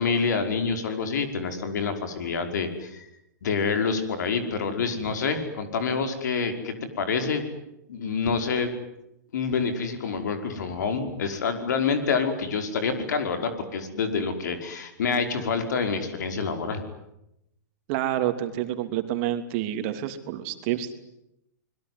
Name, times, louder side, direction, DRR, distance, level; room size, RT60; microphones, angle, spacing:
voice 1, 0.0-3.1 3.4-7.4 7.9-8.7 9.3-16.8, left 5 dB, 70° left, 7 dB, 5.3 m, -27 dB
voice 2, 17.9-20.9, right 12 dB, 45° right, 8 dB, 3.1 m, -28 dB
27.0 x 21.5 x 9.6 m, 0.84 s
hypercardioid pair, 130°, 10 cm